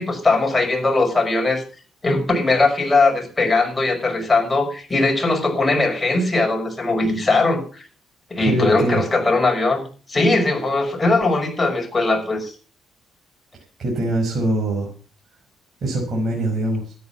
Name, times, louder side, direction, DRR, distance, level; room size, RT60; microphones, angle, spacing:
voice 1, 0.0-1.6 2.0-7.9 8.3-9.8 10.1-12.5, left 3 dB, 20° left, 2 dB, 5.8 m, -20 dB
voice 2, 8.4-9.0 13.8-14.9 15.8-16.9, right 1 dB, 50° right, 0 dB, 5.5 m, -23 dB
13.0 x 9.4 x 7.1 m, 0.39 s
cardioid pair, 90°, 0 cm